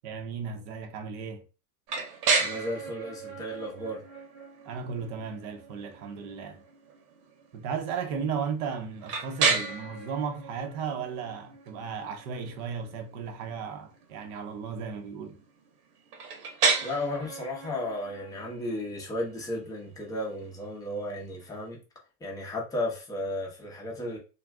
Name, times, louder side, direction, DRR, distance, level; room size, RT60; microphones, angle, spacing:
voice 1, 0.0-1.4 4.7-6.6 7.5-15.4, right 6 dB, 45° right, 0.8 m, -35 dB
sound 1, 1.9-21.6, right 5 dB, 70° right, 1.1 m, -34 dB
voice 2, 2.4-4.0 16.8-21.8 22.2-24.2, left 1 dB, 5° left, 0.7 m, -34 dB
2.5 x 2.2 x 3.4 m
hypercardioid pair, 125°, 49 cm